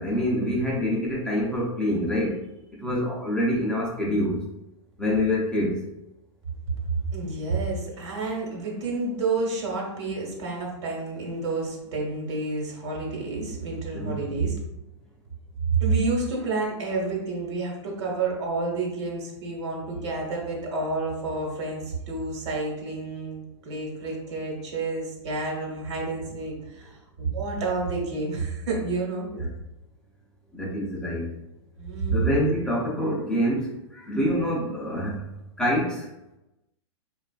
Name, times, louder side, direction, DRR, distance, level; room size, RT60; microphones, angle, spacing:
voice 1, 0.0-2.4 2.8-4.4 5.0-5.8 13.9-14.2 29.3-29.5 30.5-31.2 32.1-33.7 34.1-35.2 35.6-36.0, left 1 dB, 5° left, -5 dB, 0.4 m, -25 dB
voice 2, 6.9-14.6 15.7-29.3 31.8-32.4, right 3 dB, 65° right, -2 dB, 1.1 m, -29 dB
2.9 x 2.3 x 2.3 m, 0.92 s
hypercardioid pair, 150°, 16 cm